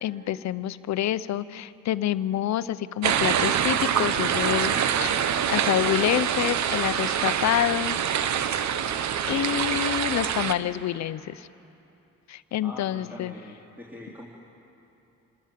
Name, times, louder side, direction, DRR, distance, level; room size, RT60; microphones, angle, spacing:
voice 1, 0.0-5.1 5.5-8.0 9.2-11.5 12.3-13.3, left 12 dB, 65° left, 16 dB, 0.7 m, -27 dB
sound 1, 3.0-10.5, right 8 dB, 65° right, 1.0 m, -25 dB
voice 2, 12.6-14.3, left 1 dB, 5° right, -5 dB, 2.9 m, -43 dB
27.0 x 13.5 x 7.5 m, 2.8 s
cardioid pair, 90°, 30 cm